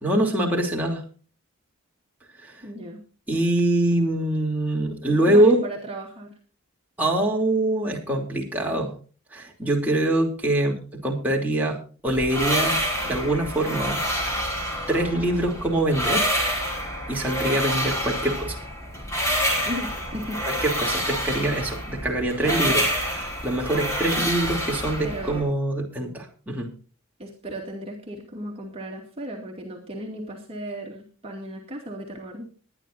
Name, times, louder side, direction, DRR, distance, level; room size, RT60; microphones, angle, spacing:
voice 1, 0.0-1.0 2.4-2.6 3.3-5.6 7.0-8.9 9.3-12.8 13.0-14.0 14.9-16.3 17.1-18.6 20.5-22.8 23.4-26.7, right 1 dB, 10° right, -2 dB, 2.9 m, -24 dB
voice 2, 2.6-3.0 5.1-6.3 19.6-20.4 22.5-22.7 25.0-25.5 27.2-32.5, right 1 dB, 25° right, -1 dB, 2.3 m, -35 dB
sound 1, 12.1-25.4, equal, 15° left, 4.7 m, -27 dB
21.5 x 10.5 x 2.6 m, 0.37 s
head